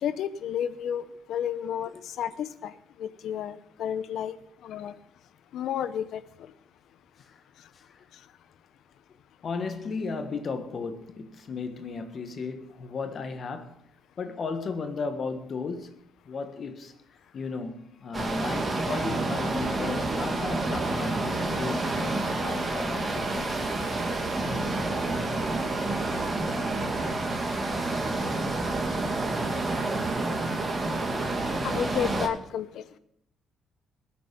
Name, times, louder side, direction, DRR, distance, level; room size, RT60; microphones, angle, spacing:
voice 1, 0.0-1.9 2.2-2.7 3.0-4.3 4.6-4.9 5.5-6.2 31.6-32.8, left 9 dB, 75° left, 0.8 m, -31 dB
voice 2, 9.4-13.8 14.2-16.0 16.3-16.9 17.3-23.6, left 4 dB, 50° left, 1.4 m, -35 dB
sound 1, 18.1-32.3, right 2 dB, 30° right, 2.2 m, -29 dB
20.0 x 7.0 x 5.4 m
cardioid pair, 90°, 0 cm